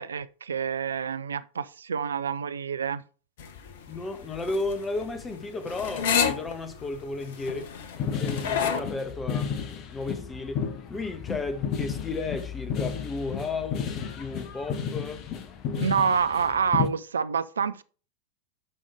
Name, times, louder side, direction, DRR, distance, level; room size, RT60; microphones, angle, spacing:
voice 1, 0.0-3.0 15.8-17.8, right 6 dB, 70° right, 0.4 m, -27 dB
sound 1, 3.4-8.8, left 7 dB, 55° left, 1.0 m, -30 dB
voice 2, 3.9-7.7 8.1-9.5 9.9-15.3, left 3 dB, 15° left, 1.2 m, -34 dB
sound 2, 8.0-16.9, left 7 dB, 35° left, 1.1 m, -32 dB
11.0 x 5.4 x 3.4 m
figure-of-eight pair, 90°, 0 cm